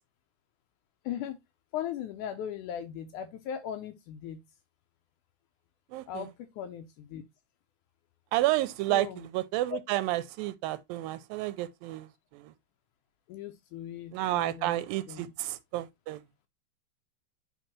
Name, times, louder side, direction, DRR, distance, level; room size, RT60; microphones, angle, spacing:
voice 1, 1.1-1.4 1.7-4.4 6.1-7.2 8.9-9.3 9.7-9.8 13.3-15.3, left 9 dB, 75° left, 1.9 m, -38 dB
voice 2, 5.9-6.3 8.3-12.5 14.1-16.2, right 16 dB, 90° right, 2.3 m, -31 dB
10.5 x 3.5 x 2.8 m
omnidirectional pair, 4.1 m